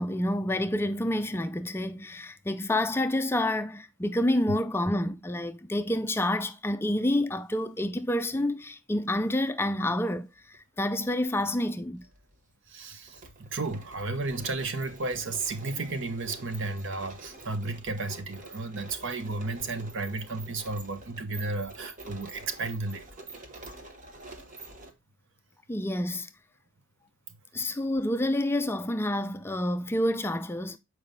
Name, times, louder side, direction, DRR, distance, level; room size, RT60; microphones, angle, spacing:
voice 1, 0.0-12.1 25.7-26.3 27.5-30.8, left 1 dB, 10° left, 0.4 m, -28 dB
sound 1, 9.1-9.4 10.4-11.2 11.4-11.5 12.0-24.9, right 2 dB, 40° right, 1.2 m, -47 dB
voice 2, 12.7-23.3, right 3 dB, 60° right, 0.9 m, -33 dB
7.1 x 4.8 x 3.8 m
head